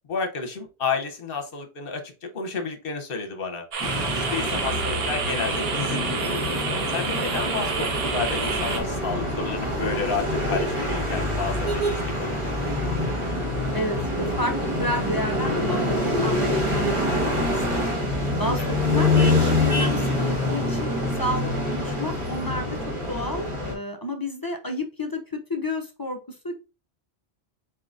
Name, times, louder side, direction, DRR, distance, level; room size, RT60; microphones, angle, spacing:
voice 1, 0.1-3.6 4.1-6.4 6.9-12.4 18.6-18.8, left 5 dB, 60° left, 5 dB, 1.0 m, -31 dB
sound 1, 3.7-8.8, right 5 dB, 65° right, 1.0 m, -29 dB
sound 2, 3.8-23.7, left 1 dB, 30° right, 1.3 m, -25 dB
voice 2, 13.7-17.9 18.4-20.9 21.2-22.8 23.1-26.5, left 1 dB, 25° left, 4 dB, 0.5 m, -31 dB
4.4 x 3.7 x 2.5 m, 0.29 s
omnidirectional pair, 1.1 m